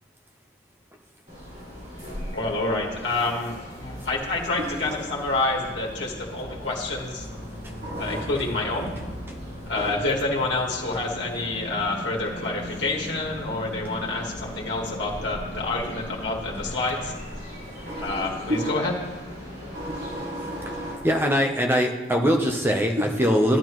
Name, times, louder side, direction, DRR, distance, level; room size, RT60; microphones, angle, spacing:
sound 1, 1.3-21.0, equal, 40° right, 3.6 m, -39 dB
voice 1, 2.3-7.3 8.0-8.9 9.7-17.1 18.0-18.9, left 2 dB, 80° left, -3 dB, 1.6 m, -28 dB
voice 2, 4.6-5.0 7.8-8.3 9.8-10.0 17.9-18.7 19.7-21.0, equal, 65° right, -3 dB, 2.1 m, -32 dB
sound 2, 7.1-18.7, equal, 50° left, 1.6 m, -42 dB
voice 3, 21.0-23.6, equal, 10° right, 3 dB, 0.8 m, -22 dB
11.0 x 10.0 x 3.1 m, 1.3 s
head